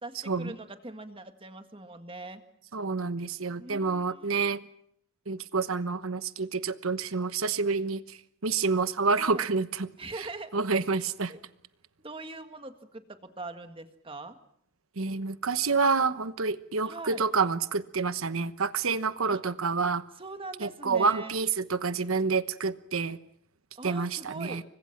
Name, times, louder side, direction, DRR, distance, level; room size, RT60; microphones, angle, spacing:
voice 1, 0.0-2.4 3.6-4.3 9.2-9.5 10.0-10.6 10.9-11.4 12.0-14.4 16.8-17.3 19.3-19.4 20.2-21.3 23.8-24.6, right 2 dB, 25° right, 7 dB, 1.9 m, -42 dB
voice 2, 2.7-4.6 5.3-9.9 10.5-11.3 15.0-20.0 20.6-23.2 23.8-24.6, right 4 dB, 80° right, 13 dB, 1.1 m, -28 dB
30.0 x 24.0 x 6.0 m, 0.68 s
head